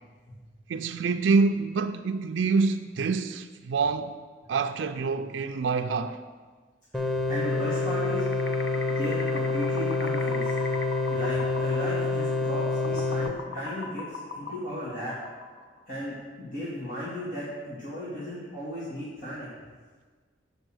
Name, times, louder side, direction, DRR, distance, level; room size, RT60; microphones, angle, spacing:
voice 1, 0.7-4.2 4.5-6.2, right 4 dB, 80° right, 0.4 m, -26 dB
voice 2, 6.9-8.2 8.9-10.5 11.1-15.2 15.9-19.5, equal, 50° left, 2.2 m, -35 dB
sound 1, 6.9-13.3, left 3 dB, ahead, 0.5 m, -27 dB
sound 2, 7.4-15.8, left 3 dB, 70° left, 0.7 m, -40 dB
7.8 x 5.3 x 6.2 m
head